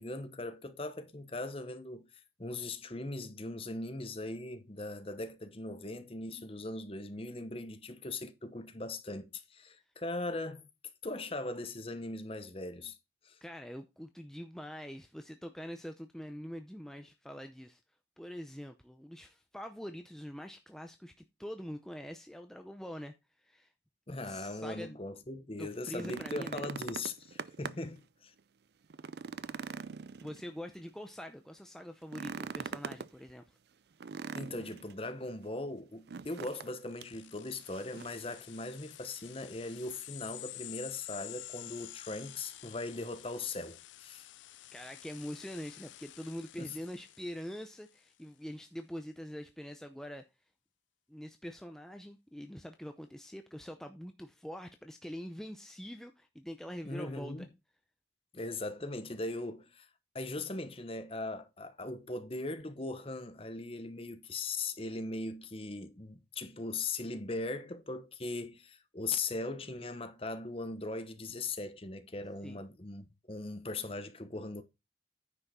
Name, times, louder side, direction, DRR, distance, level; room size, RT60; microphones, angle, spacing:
voice 1, 0.0-10.6 11.0-13.0 13.2-13.4 24.1-28.3 34.3-44.3 46.6-46.8 56.8-57.5 58.3-59.9 60.1-74.6, left 2 dB, 30° left, 1.0 m, -39 dB
voice 2, 13.4-17.8 18.2-21.1 21.4-23.7 24.2-25.0 25.6-26.7 30.2-33.6 44.7-50.2 51.1-57.5 72.4-72.6, equal, 5° left, 0.6 m, -44 dB
sound 1, 25.7-28.0 28.4-28.5 28.9-30.8 32.0-33.1 34.0-34.9 36.1-36.7 37.0-37.1 37.7-38.3 39.4-39.5, right 5 dB, 60° right, 0.4 m, -42 dB
sound 2, 36.8-47.9, left 15 dB, 85° left, 0.4 m, -49 dB
9.7 x 5.7 x 4.2 m
head